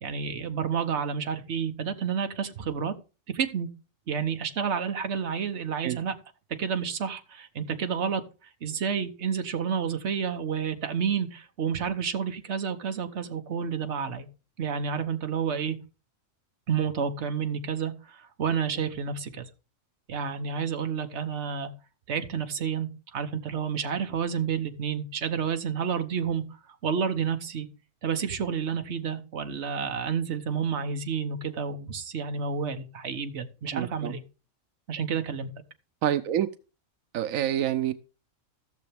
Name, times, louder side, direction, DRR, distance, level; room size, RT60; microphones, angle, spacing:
voice 1, 0.0-2.9 3.3-3.7 4.1-6.1 6.6-8.2 8.6-14.3 14.6-15.8 16.7-19.5 20.1-21.7 22.1-26.4 26.8-27.7 28.0-34.2 34.9-35.5, right 7 dB, 60° right, 1.3 m, -30 dB
voice 2, 33.7-34.1 36.0-36.5 37.1-37.9, right 11 dB, 90° right, 1.0 m, -27 dB
15.0 x 6.9 x 3.4 m
omnidirectional pair, 1.3 m